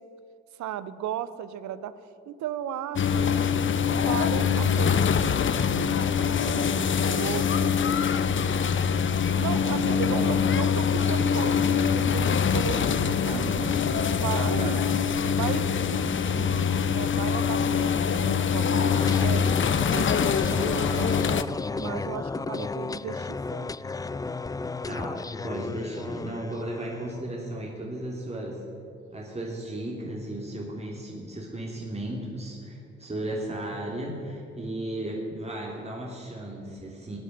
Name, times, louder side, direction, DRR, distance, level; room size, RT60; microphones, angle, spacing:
voice 1, 0.6-3.4 3.9-7.8 9.3-13.5 14.1-14.9 15.4-19.5 19.9-21.2 21.7-23.7, right 10 dB, 60° right, 15 dB, 0.9 m, -36 dB
sound 1, 3.0-21.4, left 7 dB, 40° left, 0.9 m, -24 dB
voice 2, 9.2-10.3 13.3-13.8 14.5-15.6 24.9-28.6 29.1-37.2, right 1 dB, 20° right, -2 dB, 3.1 m, -35 dB
sound 2, 18.9-27.2, left 4 dB, 10° left, 0.4 m, -34 dB
17.5 x 8.3 x 9.5 m, 2.7 s
hypercardioid pair, 45°, 32 cm